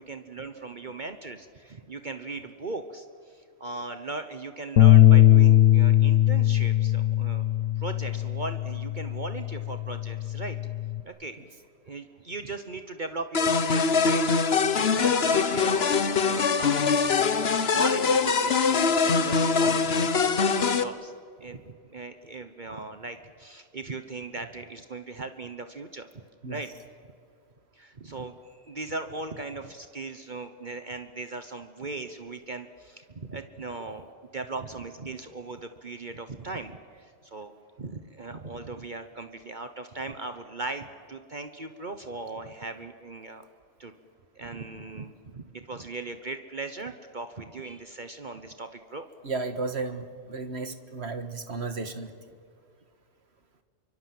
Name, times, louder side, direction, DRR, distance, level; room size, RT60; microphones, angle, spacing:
voice 1, 0.0-7.5 7.8-10.6 11.0-11.4 11.8-14.2 14.7-15.9 16.2-17.1 17.6-21.1 21.4-26.1 26.5-26.7 27.7-34.1 34.3-37.5 37.8-43.5 43.8-43.9 44.3-49.0, right 3 dB, 45° right, 8 dB, 1.2 m, -38 dB
sound 1, 4.8-11.0, left 13 dB, 90° left, 1.2 m, -20 dB
sound 2, 13.3-20.8, left 5 dB, 60° left, 1.3 m, -23 dB
voice 2, 49.2-52.1, right 3 dB, 60° right, 9 dB, 1.9 m, -33 dB
28.5 x 24.5 x 7.8 m, 2.2 s
omnidirectional pair, 1.2 m